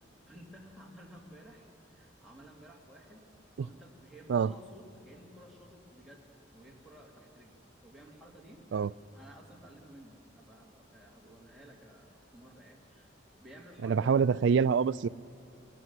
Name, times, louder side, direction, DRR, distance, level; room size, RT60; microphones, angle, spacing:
voice 1, 0.3-3.2 3.6-13.1 13.4-14.2 14.4-14.6, equal, ahead, -2 dB, 2.4 m, -54 dB
voice 2, 13.8-15.1, right 6 dB, 70° right, 18 dB, 0.4 m, -25 dB
20.0 x 14.0 x 9.5 m, 2.8 s
head